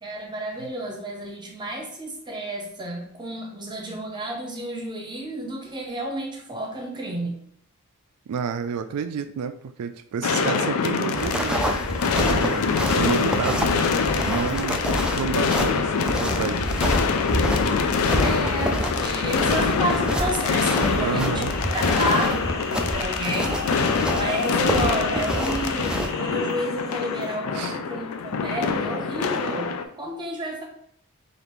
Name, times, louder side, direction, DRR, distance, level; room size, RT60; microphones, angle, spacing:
voice 1, 0.0-7.4 18.2-21.5 21.7-23.6 24.1-30.6, right 1 dB, 20° right, 1 dB, 0.8 m, -31 dB
voice 2, 8.3-11.7 12.1-16.8 21.0-21.5 27.5-27.8, right 6 dB, 85° right, 10 dB, 0.3 m, -30 dB
sound 1, 10.2-29.8, left 5 dB, 80° left, 0.4 m, -25 dB
sound 2, 11.1-26.1, right 1 dB, 5° right, 0.3 m, -28 dB
sound 3, 18.8-27.3, equal, 15° left, 1.4 m, -41 dB
5.0 x 2.6 x 3.0 m, 0.68 s
head